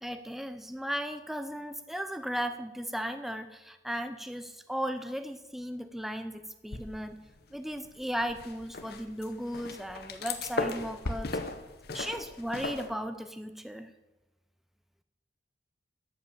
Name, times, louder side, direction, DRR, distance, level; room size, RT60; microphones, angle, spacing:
voice 1, 0.0-7.2 7.5-11.4 11.9-13.9, equal, ahead, 9 dB, 0.5 m, -36 dB
sound 1, 6.7-7.4 7.7-12.9, left 3 dB, 55° left, 0.9 m, -37 dB
13.0 x 5.4 x 7.8 m, 1.1 s
head